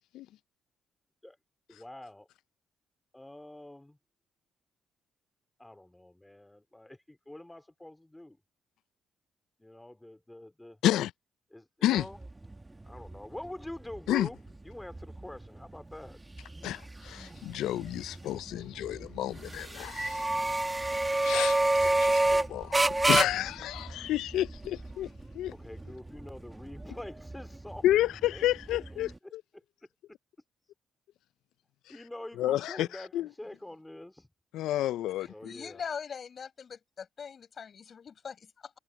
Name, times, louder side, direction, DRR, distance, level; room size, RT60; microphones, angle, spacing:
voice 1, 1.7-2.3 3.1-4.0 5.6-8.4 9.6-10.8 11.5-12.2 12.8-14.4 14.6-16.2 25.5-28.4 29.2-29.6 31.9-34.3 35.2-35.8, left 1 dB, 10° left, 3.3 m, -45 dB
sound 1, 12.0-29.2, right 2 dB, 15° right, 1.4 m, -31 dB
voice 2, 16.6-20.4 20.7-20.8 21.2-25.1 25.3-25.5 27.8-29.4 32.4-32.9 33.1-33.3 34.5-35.5, left 13 dB, 85° left, 0.4 m, -30 dB
voice 3, 35.2-38.7, left 6 dB, 50° left, 5.9 m, -42 dB
cardioid pair, 90°, 0 cm